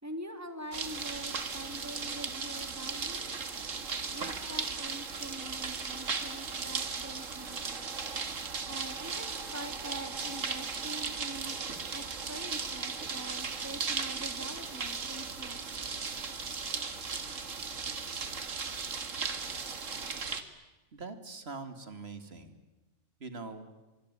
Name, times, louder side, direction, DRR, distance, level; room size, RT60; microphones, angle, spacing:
voice 1, 0.0-3.5 4.1-7.9 8.7-11.5 11.9-15.6, right 1 dB, 10° right, 8 dB, 2.6 m, -44 dB
sound 1, 0.7-20.4, right 5 dB, 90° right, 2.2 m, -37 dB
voice 2, 20.9-22.5 23.2-23.6, right 3 dB, 55° right, 9 dB, 2.6 m, -43 dB
24.5 x 24.5 x 9.9 m, 1.1 s
omnidirectional pair, 1.3 m